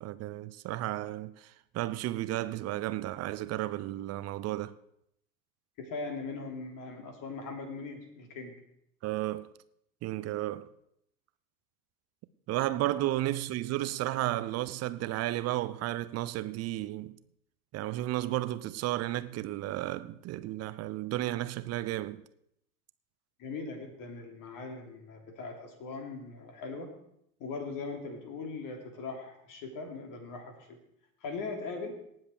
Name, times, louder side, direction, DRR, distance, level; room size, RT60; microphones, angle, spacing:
voice 1, 0.0-4.8 9.0-9.5 10.0-10.7 12.5-17.2 17.7-22.2, right 15 dB, 35° right, 0.7 m, -33 dB
voice 2, 5.8-8.5 23.4-26.9 27.4-30.8 31.2-32.0, left 4 dB, 45° left, 3.3 m, -40 dB
18.5 x 7.6 x 4.7 m
figure-of-eight pair, 75°, 46 cm